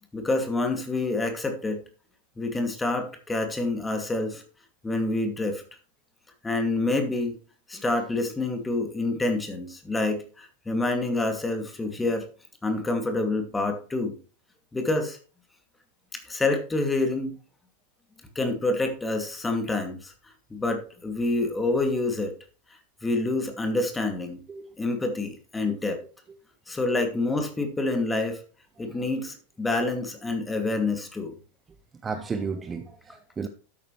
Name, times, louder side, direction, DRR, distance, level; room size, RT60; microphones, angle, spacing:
voice 1, 0.1-1.8 2.4-4.4 4.8-5.6 6.4-7.4 7.7-12.3 12.6-14.1 14.7-15.2 16.1-17.3 18.3-20.1 20.5-22.3 23.0-24.4 24.8-26.0 26.7-28.4 28.8-31.3, left 2 dB, 10° left, 5 dB, 2.4 m, -27 dB
voice 2, 32.0-33.5, right 5 dB, 20° right, 9 dB, 0.8 m, -33 dB
12.5 x 8.8 x 3.2 m, 0.37 s
figure-of-eight pair, 90°, 0 cm